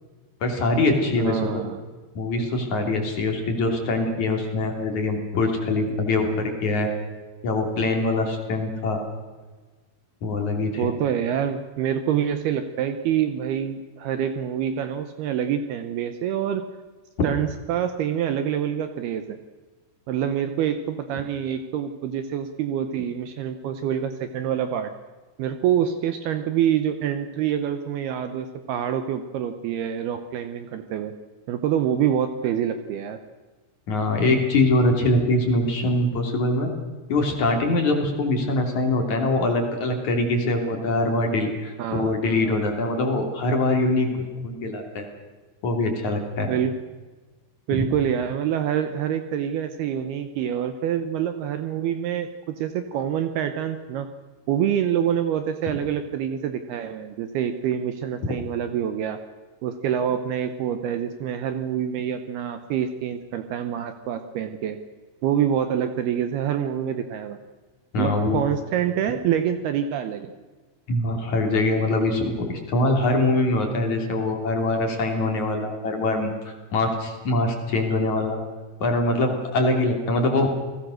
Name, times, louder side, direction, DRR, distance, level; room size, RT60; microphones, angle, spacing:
voice 1, 0.4-1.5 2.1-6.9 7.4-9.0 10.2-10.9 33.9-36.7 37.1-45.1 45.6-46.5 47.7-47.8 67.9-68.4 70.9-78.4 78.8-80.5, left 2 dB, 40° left, 3 dB, 3.6 m, -23 dB
voice 2, 1.2-1.8 10.8-16.6 17.2-19.4 20.1-24.9 25.4-31.1 31.5-33.2 41.8-42.7 46.5-46.8 47.7-54.1 54.5-59.2 59.6-64.8 65.2-67.4 68.0-70.3 79.8-79.9, right 9 dB, 80° right, 9 dB, 2.3 m, -26 dB
29.0 x 20.0 x 6.4 m, 1.3 s
omnidirectional pair, 5.8 m